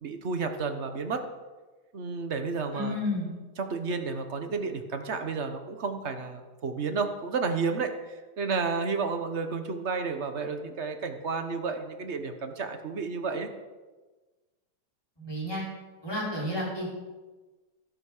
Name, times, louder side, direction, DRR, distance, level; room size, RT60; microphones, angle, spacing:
voice 1, 0.0-1.2 1.9-2.9 3.6-13.5, right 4 dB, 40° right, 6 dB, 1.4 m, -31 dB
voice 2, 2.7-3.3 15.2-15.6 16.0-16.9, left 1 dB, 10° left, -6 dB, 5.5 m, -31 dB
13.5 x 10.5 x 6.6 m, 1.3 s
omnidirectional pair, 2.0 m